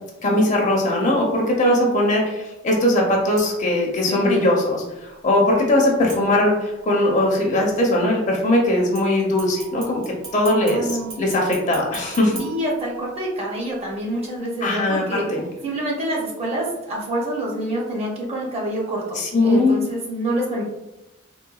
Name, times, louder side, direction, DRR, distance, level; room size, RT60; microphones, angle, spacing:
voice 1, 0.2-10.9 11.2-12.4 14.6-15.4 19.2-19.8, left 1 dB, 40° left, -1 dB, 0.6 m, -20 dB
sound 1, 3.4-3.8 6.1-6.8 8.9-13.3 13.8-13.9, right 5 dB, 75° right, 1.0 m, -40 dB
voice 2, 4.1-4.5 10.6-11.1 12.4-15.2 15.6-20.6, right 1 dB, 30° right, -2 dB, 0.7 m, -27 dB
3.7 x 2.2 x 2.3 m, 0.95 s
head